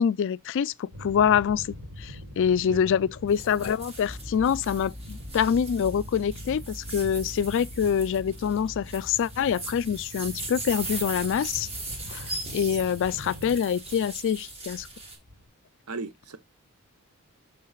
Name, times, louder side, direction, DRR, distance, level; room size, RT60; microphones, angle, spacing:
voice 1, 0.0-1.7 2.0-11.7 12.1-14.9, left 8 dB, 55° left, 0.3 m, -25 dB
sound 1, 0.9-15.5, left 1 dB, 60° right, 3.3 m, -44 dB
voice 2, 2.5-2.9 15.9-16.4, right 3 dB, 85° right, 0.8 m, -37 dB
sound 2, 3.3-15.2, right 2 dB, 25° right, 1.5 m, -39 dB
sound 3, 4.0-9.3, left 1 dB, ahead, 0.5 m, -43 dB
11.5 x 3.8 x 2.3 m
head